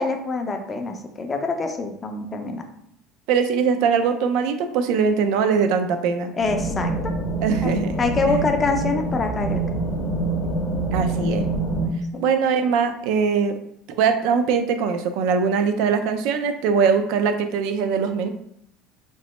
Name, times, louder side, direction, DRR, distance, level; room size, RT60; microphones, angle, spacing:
voice 1, 0.0-2.6 6.4-7.2 7.6-9.6, left 3 dB, 25° left, 5 dB, 0.4 m, -25 dB
voice 2, 3.3-6.3 7.4-8.4 10.9-11.5 12.2-13.6 14.0-18.3, right 6 dB, 70° right, 8 dB, 0.3 m, -21 dB
sound 1, 6.4-11.9, right 2 dB, 50° left, 0.7 m, -25 dB
2.9 x 2.1 x 3.0 m, 0.70 s
supercardioid pair, 120°, 0 cm